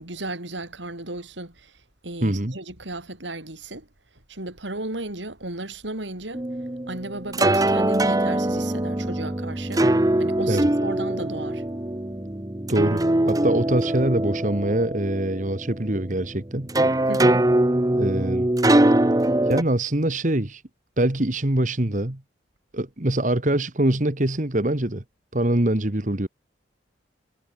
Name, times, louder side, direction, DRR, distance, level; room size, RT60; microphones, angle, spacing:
voice 1, 0.0-1.8 2.0-3.9 4.3-6.4 6.9-9.9 10.2-11.6 17.1-17.5, right 2 dB, 75° right, 4.6 m, -35 dB
voice 2, 2.2-2.6 10.5-10.7 12.7-16.7 17.9-18.5 19.5-20.6 21.0-22.2 22.7-25.0 25.3-26.3, right 1 dB, 40° right, 1.7 m, -24 dB
sound 1, 6.3-19.6, right 1 dB, 20° right, 0.8 m, -22 dB
head